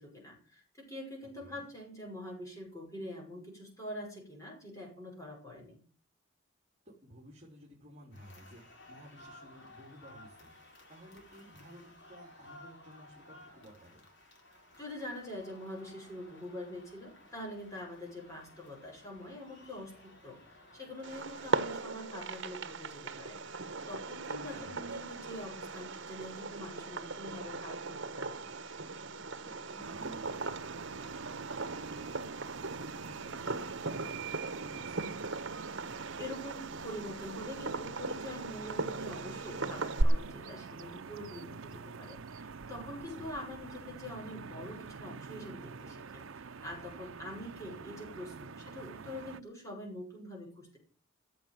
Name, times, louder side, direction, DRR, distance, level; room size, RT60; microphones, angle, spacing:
voice 1, 0.0-5.8 14.8-28.4 36.2-50.8, left 1 dB, 15° left, -1 dB, 5.5 m, -45 dB
voice 2, 1.4-1.7 6.8-14.1 24.3-24.9 29.4-35.1 43.0-43.3, equal, 30° right, -3 dB, 3.7 m, -54 dB
sound 1, 8.1-21.5, left 1 dB, 60° left, 4.2 m, -56 dB
Fireworks, 21.0-40.0, right 3 dB, 65° right, 1.3 m, -38 dB
sound 2, 29.8-49.4, right 5 dB, 80° right, 0.7 m, -46 dB
14.5 x 7.2 x 9.1 m, 0.43 s
head